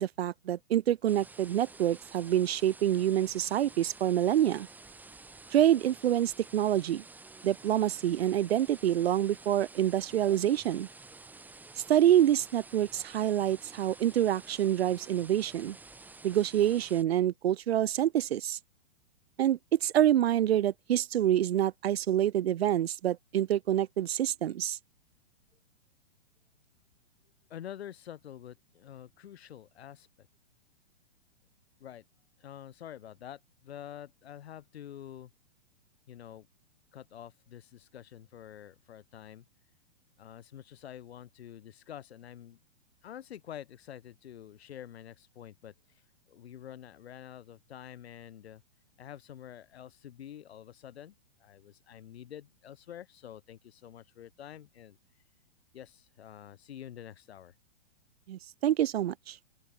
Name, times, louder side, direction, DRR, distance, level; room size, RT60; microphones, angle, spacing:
voice 1, 0.0-4.7 5.5-7.0 7.4-10.9 11.9-15.8 16.2-18.6 19.4-24.8 58.3-59.4, right 11 dB, 65° right, 1.4 m, -27 dB
sound 1, 1.1-17.0, right 3 dB, 5° right, 5.7 m, -51 dB
voice 2, 27.5-30.1 31.8-32.0 32.4-35.3 36.1-36.5 36.9-39.4 40.2-42.6 43.0-45.7 46.3-48.6 49.0-51.1 51.4-55.0 55.7-57.5, left 10 dB, 65° left, 2.8 m, -47 dB
open air
hypercardioid pair, 160°, 34 cm